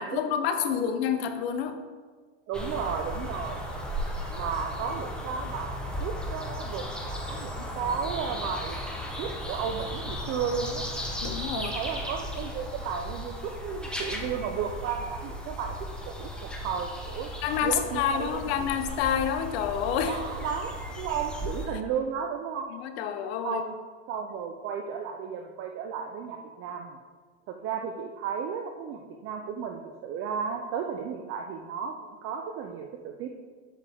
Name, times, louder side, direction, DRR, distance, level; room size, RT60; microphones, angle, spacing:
voice 1, 0.0-1.8 11.2-11.7 17.4-20.2 22.7-23.6, left 8 dB, 65° left, 8 dB, 1.0 m, -28 dB
sound 1, 2.5-21.7, equal, 5° left, 1.1 m, -36 dB
voice 2, 2.5-3.6 4.3-8.8 9.2-10.8 11.5-15.8 16.0-16.3 16.6-17.3 17.6-18.7 20.0-22.7 23.4-23.8 24.1-27.0 27.5-32.0 32.2-33.3, right 6 dB, 40° right, 4 dB, 0.6 m, -34 dB
7.4 x 6.4 x 3.5 m, 1.5 s
hypercardioid pair, 115°, 34 cm